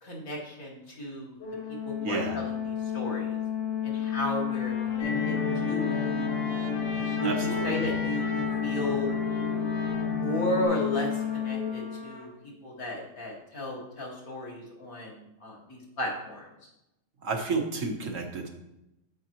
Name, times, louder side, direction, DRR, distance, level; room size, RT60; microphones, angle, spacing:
voice 1, 0.0-1.4 1.8-3.4 3.8-6.1 7.1-9.1 10.1-12.3 12.6-16.5, left 1 dB, 85° left, -3 dB, 2.4 m, -34 dB
Organ, 1.4-12.3, left 9 dB, 50° left, 1.2 m, -31 dB
voice 2, 2.0-2.4 7.2-7.8 17.2-18.5, right 3 dB, 65° right, 2 dB, 1.5 m, -31 dB
Trumpet, 3.6-3.7 4.3-12.3, left 2 dB, 70° left, 1.6 m, -43 dB
sound 1, 5.0-10.7, left 1 dB, 15° left, 3.3 m, -34 dB
8.0 x 7.4 x 3.0 m, 0.89 s
omnidirectional pair, 1.5 m